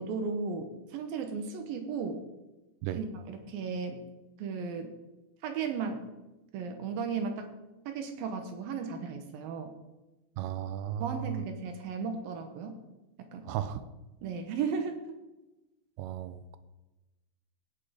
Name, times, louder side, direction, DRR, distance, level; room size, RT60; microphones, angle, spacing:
voice 1, 0.0-2.2 3.0-4.0 4.4-4.9 5.4-6.0 6.5-7.5 7.9-9.7 11.0-12.8 13.3-13.5 14.2-15.0, right 5 dB, 70° right, 6 dB, 2.4 m, -35 dB
voice 2, 10.4-11.4 13.4-13.8 16.0-16.6, right 11 dB, 85° right, 12 dB, 2.8 m, -35 dB
17.0 x 6.8 x 5.0 m, 1.0 s
omnidirectional pair, 5.0 m